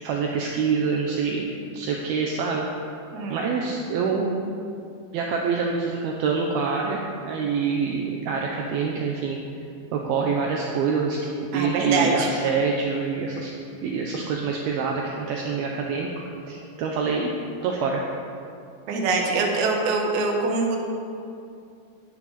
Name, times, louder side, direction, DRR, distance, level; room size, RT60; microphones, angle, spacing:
voice 1, 0.0-2.7 3.3-4.3 5.1-9.4 9.9-13.5 13.8-16.1 16.5-17.3 17.6-18.0, right 5 dB, 85° right, 0 dB, 2.2 m, -26 dB
voice 2, 11.5-12.3 18.9-20.8, right 3 dB, 65° right, 0 dB, 1.9 m, -24 dB
18.5 x 9.0 x 4.2 m, 2.5 s
omnidirectional pair, 5.5 m